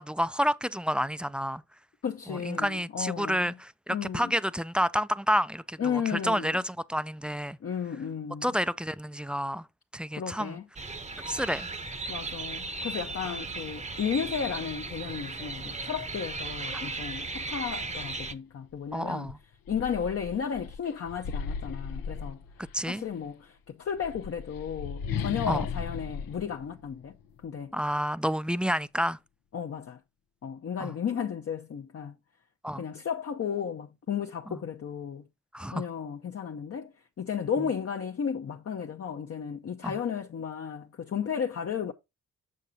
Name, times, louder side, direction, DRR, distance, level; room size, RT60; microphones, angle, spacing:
voice 1, 0.0-1.6 2.3-7.6 8.4-9.7 9.9-10.6 11.3-11.7 13.3-13.4 18.9-19.4 22.7-23.0 25.5-25.7 27.7-29.2 30.8-31.0 32.6-32.8 34.5-34.6 35.5-35.9 37.6-37.7 39.8-40.0, equal, 5° right, 0.4 m, -29 dB
voice 2, 2.0-3.5 3.9-4.3 5.8-6.6 7.6-8.5 10.2-10.6 12.1-19.3 19.7-22.4 22.9-27.1 27.4-27.7 29.5-30.0 30.4-32.2 32.8-35.3 35.7-41.9, left 7 dB, 45° left, 0.7 m, -34 dB
sound 1, 10.7-18.3, right 3 dB, 20° right, 0.8 m, -36 dB
sound 2, 18.7-18.9 19.3-22.9 23.8-27.5, left 6 dB, 85° left, 0.7 m, -37 dB
6.6 x 6.4 x 2.7 m
supercardioid pair, 50°, 33 cm